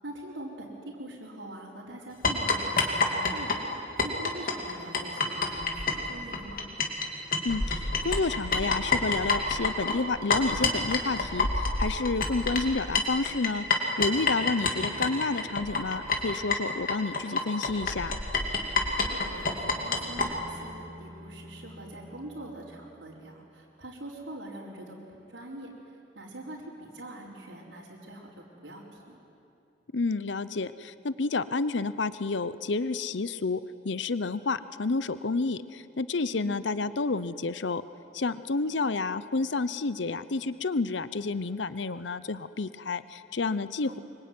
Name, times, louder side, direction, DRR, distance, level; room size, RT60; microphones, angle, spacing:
voice 1, 0.0-3.6 4.0-6.7 14.7-15.1 19.0-25.7 26.1-28.3 28.6-29.2 36.3-36.6 38.5-38.9 43.8-44.0, right 1 dB, 85° right, -7 dB, 4.4 m, -43 dB
sound 1, 2.2-7.1 7.3-20.3, left 4 dB, 50° left, 2.8 m, -27 dB
voice 2, 7.4-13.6 14.0-18.1 29.9-33.6 33.8-37.8 38.1-44.0, left 3 dB, 80° left, 15 dB, 0.8 m, -30 dB
Bowed string instrument, 18.6-23.4, equal, 25° left, 6.0 m, -50 dB
25.0 x 24.0 x 9.6 m, 2.7 s
head